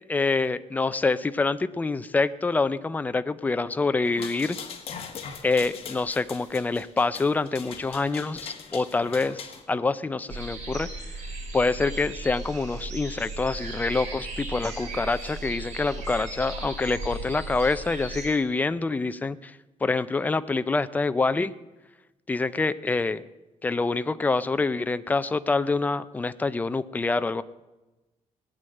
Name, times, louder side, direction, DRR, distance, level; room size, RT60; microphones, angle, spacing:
voice 1, 0.1-4.6 5.4-10.9 11.5-21.5 22.3-23.2 23.6-27.4, left 3 dB, 15° left, 13 dB, 0.4 m, -26 dB
sound 1, 4.0-9.6, left 7 dB, 50° left, 1.5 m, -41 dB
sound 2, 10.3-18.3, right 2 dB, 65° right, 8.0 m, -36 dB
18.5 x 9.4 x 7.6 m, 1.1 s
cardioid pair, 165°, 13 cm